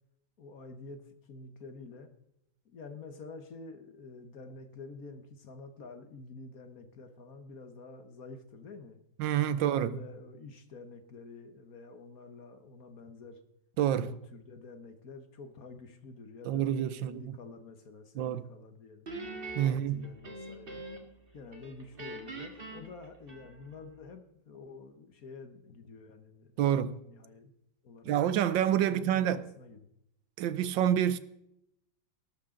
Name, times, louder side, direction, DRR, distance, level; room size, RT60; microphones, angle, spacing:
voice 1, 0.4-2.1 2.6-9.0 9.5-13.4 14.0-19.1 19.6-20.8 21.3-27.6 27.8-28.2 28.7-29.9, left 3 dB, 50° left, 1.5 m, -48 dB
voice 2, 9.2-10.0 13.8-14.1 16.4-17.4 18.1-18.5 19.6-20.1 26.6-27.0 28.0-29.4 30.4-31.2, right 10 dB, 80° right, 1.4 m, -28 dB
Guitar, 19.1-21.2 21.5-23.8, right 2 dB, 30° right, 1.9 m, -43 dB
19.0 x 12.0 x 3.8 m
omnidirectional pair, 2.1 m